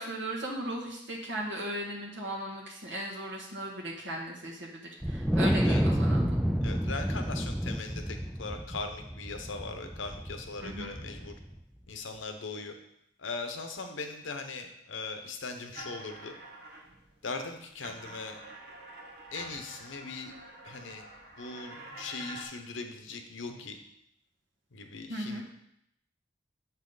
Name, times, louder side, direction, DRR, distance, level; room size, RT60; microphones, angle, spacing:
voice 1, 0.0-6.3 10.6-10.9 25.1-25.4, right 1 dB, 75° right, -3 dB, 1.4 m, -37 dB
Wind, 5.0-11.5, equal, ahead, 0.3 m, -29 dB
voice 2, 6.6-11.3 11.9-12.7 13.2-16.3 17.2-18.4 19.3-20.3 20.6-21.1 21.4-23.8 24.7-25.4, left 3 dB, 90° left, 6 dB, 0.9 m, -39 dB
sound 1, 15.7-17.2 17.6-22.4, right 1 dB, 55° right, 1.2 m, -47 dB
7.3 x 5.7 x 4.0 m, 0.76 s
head